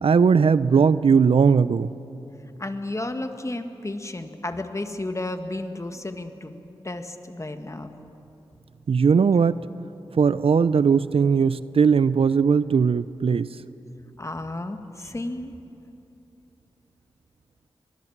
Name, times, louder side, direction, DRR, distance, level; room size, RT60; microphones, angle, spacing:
voice 1, 0.0-1.9 8.9-9.6 10.1-13.5, right 6 dB, 65° right, 16 dB, 0.6 m, -19 dB
voice 2, 2.6-6.5 6.8-7.9 14.2-15.5, left 2 dB, 30° left, 7 dB, 1.9 m, -32 dB
24.5 x 20.5 x 7.4 m, 2.9 s
cardioid pair, 45°, 10 cm